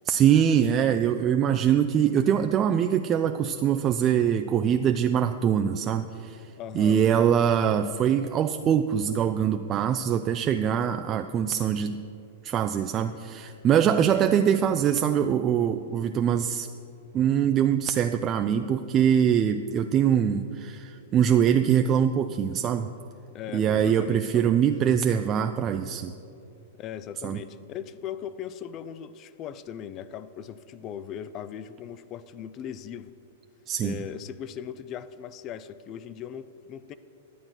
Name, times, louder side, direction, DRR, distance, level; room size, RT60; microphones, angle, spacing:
voice 1, 0.1-6.5 6.7-12.0 12.4-16.7 17.1-22.9 23.5-26.1 27.2-27.4 33.7-34.0, right 8 dB, 30° right, 7 dB, 0.3 m, -23 dB
voice 2, 6.6-7.0 14.1-14.3 23.3-24.6 26.8-33.1 33.8-37.0, left 9 dB, 35° left, 15 dB, 0.4 m, -39 dB
11.0 x 7.7 x 5.8 m, 2.6 s
hypercardioid pair, 120°, 0 cm